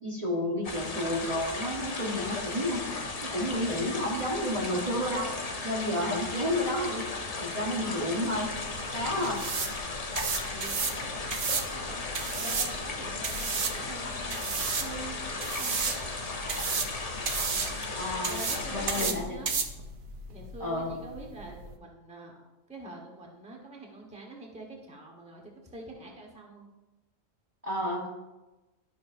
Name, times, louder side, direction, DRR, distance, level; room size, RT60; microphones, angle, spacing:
voice 1, 0.0-2.8 3.2-7.0 7.4-8.5 8.9-9.4 17.9-18.4 18.7-19.4 20.6-20.9 27.6-28.1, left 1 dB, 30° right, -3 dB, 1.1 m, -31 dB
sound 1, 0.6-19.1, left 3 dB, 40° left, 0.6 m, -36 dB
sound 2, 8.3-21.8, right 5 dB, 50° right, 0.7 m, -34 dB
voice 2, 10.5-16.0 18.3-19.5 20.3-26.7, right 2 dB, 5° right, 0 dB, 1.0 m, -45 dB
12.0 x 5.9 x 2.5 m, 1.1 s
omnidirectional pair, 1.3 m